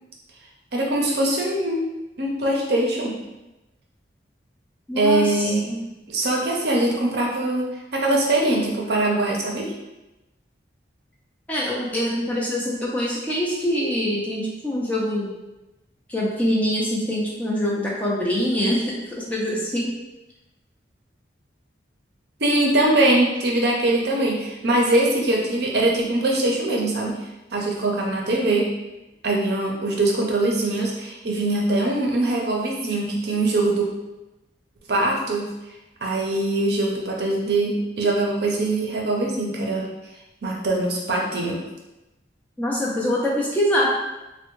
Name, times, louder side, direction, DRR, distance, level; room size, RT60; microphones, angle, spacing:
voice 1, 0.7-1.8 2.2-3.1 5.0-5.6 6.1-7.7 7.9-9.7 22.4-27.1 27.5-28.7 29.2-33.9 34.9-35.5 36.0-39.9 40.4-41.6, right 2 dB, 60° right, -1 dB, 0.6 m, -22 dB
voice 2, 4.9-5.8 11.5-15.3 16.1-19.9 42.6-43.9, equal, 10° left, -5 dB, 0.5 m, -24 dB
3.4 x 2.1 x 3.0 m, 1.0 s
head